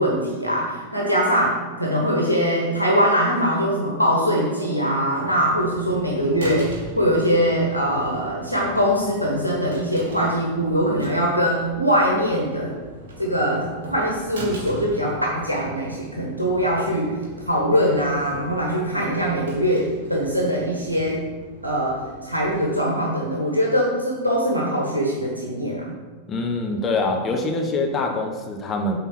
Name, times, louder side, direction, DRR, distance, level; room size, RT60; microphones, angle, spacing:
voice 1, 0.0-12.7 13.2-17.1 17.5-21.2 21.6-25.9, equal, 85° right, -1 dB, 1.1 m, -22 dB
sound 1, 5.1-22.7, right 1 dB, 60° right, 2.0 m, -41 dB
voice 2, 26.3-29.0, left 2 dB, 25° left, 2 dB, 1.1 m, -24 dB
8.2 x 3.8 x 5.8 m, 1.4 s
figure-of-eight pair, 90°, 0 cm